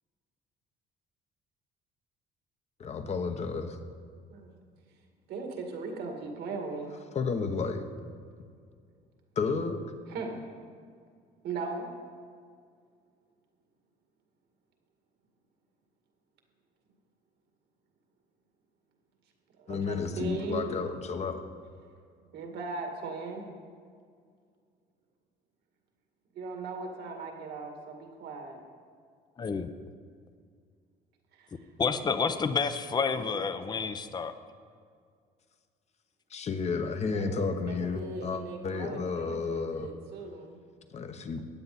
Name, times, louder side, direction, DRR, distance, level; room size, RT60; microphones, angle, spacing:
voice 1, 2.8-3.8 7.1-7.8 9.4-9.8 19.7-21.4 36.3-39.9 40.9-41.4, left 4 dB, 40° left, 1.1 m, -32 dB
voice 2, 5.3-6.9 10.1-10.4 11.4-11.9 19.6-20.9 22.3-23.5 26.3-28.6 31.3-31.7 32.0-32.3 33.0-33.4 37.1-40.6, right 3 dB, 75° right, 2.1 m, -38 dB
voice 3, 29.4-29.7 31.8-34.3, left 5 dB, 25° left, 0.6 m, -29 dB
15.5 x 9.4 x 4.3 m
cardioid pair, 110°, 17 cm